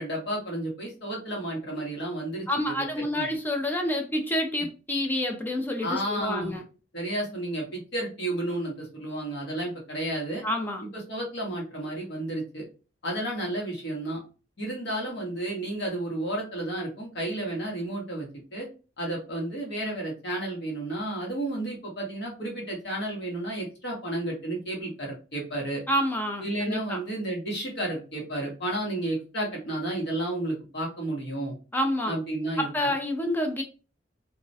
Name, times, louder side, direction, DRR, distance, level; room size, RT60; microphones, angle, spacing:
voice 1, 0.0-2.9 3.1-3.3 5.8-6.6 6.9-10.4 10.8-12.6 13.0-14.2 14.6-18.7 19.0-25.8 26.4-31.5 32.1-32.7, right 1 dB, 60° left, 1.0 m, -32 dB
voice 2, 2.5-6.6 10.4-10.8 25.9-27.0 31.7-32.2 32.6-33.6, left 1 dB, 10° left, 0.4 m, -28 dB
2.3 x 2.1 x 2.6 m
head